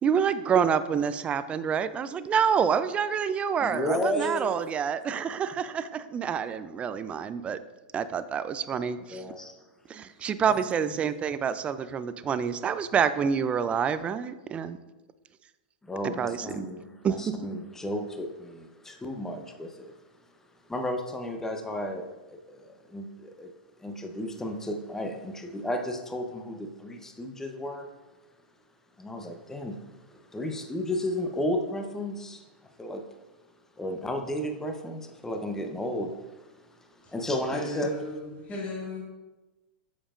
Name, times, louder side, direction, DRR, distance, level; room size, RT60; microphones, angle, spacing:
voice 1, 0.0-7.6 7.9-9.2 9.9-14.8 16.0-16.7 17.0-17.4, right 7 dB, 25° right, 13 dB, 0.4 m, -27 dB
voice 2, 3.6-4.5 9.1-9.5 15.8-19.9 20.7-23.5 23.8-27.9 29.0-29.8 30.3-32.4 32.8-33.0 33.8-36.1 37.1-37.9, left 1 dB, 10° left, 4 dB, 0.8 m, -33 dB
voice 3, 37.5-38.2 38.5-39.0, left 2 dB, 30° left, -3 dB, 2.1 m, -35 dB
8.5 x 7.1 x 2.5 m, 1.1 s
hypercardioid pair, 105°, 5 cm